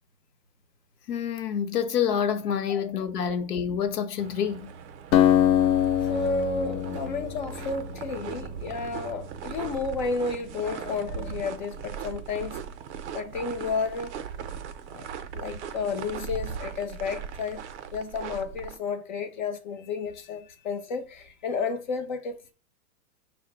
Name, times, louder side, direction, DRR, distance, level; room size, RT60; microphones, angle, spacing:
voice 1, 1.1-4.7, left 8 dB, 70° left, 0.9 m, -27 dB
sound 1, 4.2-18.8, right 7 dB, 45° right, 0.5 m, -39 dB
Acoustic guitar, 5.1-8.7, left 11 dB, 85° left, 0.6 m, -24 dB
voice 2, 6.0-12.6 13.1-14.2 14.9-15.1 15.3-17.6 17.9-22.5, left 4 dB, 30° left, 0.4 m, -32 dB
5.7 x 2.1 x 3.8 m
hypercardioid pair, 150°, 49 cm